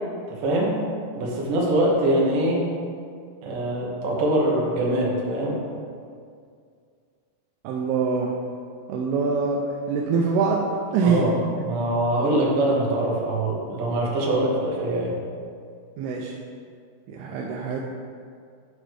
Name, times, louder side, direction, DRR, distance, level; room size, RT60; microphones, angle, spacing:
voice 1, 0.3-0.8 1.2-2.7 3.4-5.6 11.0-11.4 11.6-15.1, right 1 dB, 65° right, -3 dB, 2.5 m, -23 dB
voice 2, 7.6-8.3 8.9-11.6 16.0-16.3 17.1-17.8, right 4 dB, 85° right, -1 dB, 2.5 m, -24 dB
9.9 x 4.9 x 3.3 m, 2.3 s
omnidirectional pair, 4.6 m